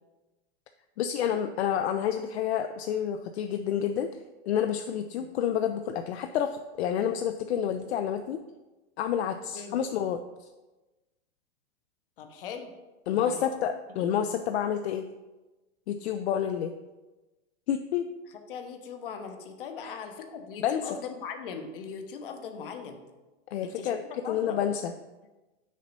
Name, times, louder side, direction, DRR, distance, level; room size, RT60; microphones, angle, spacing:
voice 1, 1.0-4.1 4.5-8.4 9.0-10.5 13.1-15.1 15.9-16.7 17.7-18.1 19.8-19.9 20.6-21.0 23.5-24.0 24.3-24.9, left 9 dB, 75° left, 8 dB, 0.5 m, -29 dB
voice 2, 12.2-12.7 13.1-13.4 13.9-14.1 16.4-16.5 18.3-23.0 23.6-24.6, left 6 dB, 55° left, 6 dB, 0.9 m, -40 dB
6.3 x 4.0 x 5.3 m, 1.1 s
supercardioid pair, 175°, 33 cm